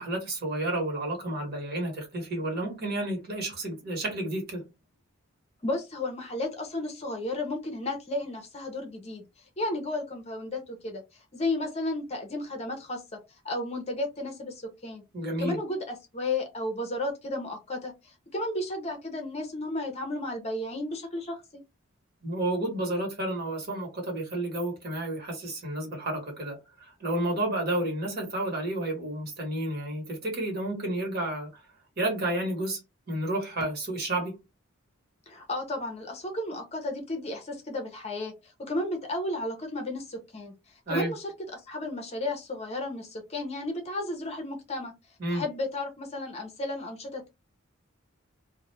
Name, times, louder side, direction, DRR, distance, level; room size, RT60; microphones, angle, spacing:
voice 1, 0.0-4.7 15.1-15.6 22.2-31.5 32.0-32.8 33.1-34.4 40.9-41.1 45.2-45.4, right 1 dB, 50° right, 1.1 m, -31 dB
voice 2, 5.6-9.2 9.6-13.2 13.4-15.0 15.4-21.6 35.3-40.5 40.9-44.9 45.3-47.3, left 2 dB, 30° left, 0.6 m, -33 dB
2.3 x 2.1 x 3.1 m
head